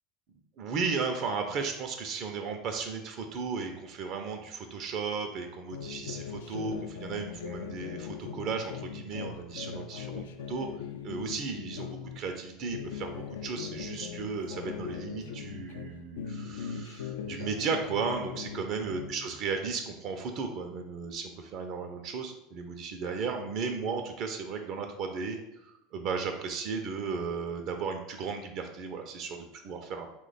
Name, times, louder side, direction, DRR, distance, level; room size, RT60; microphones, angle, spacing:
voice 1, 0.6-10.7 11.0-30.1, right 5 dB, 55° right, 5 dB, 0.4 m, -35 dB
sound 1, 5.7-12.2 12.6-15.9 16.2-19.3, left 7 dB, 75° left, 0.3 m, -40 dB
2.8 x 2.2 x 3.9 m, 0.88 s
hypercardioid pair, 80°, 0 cm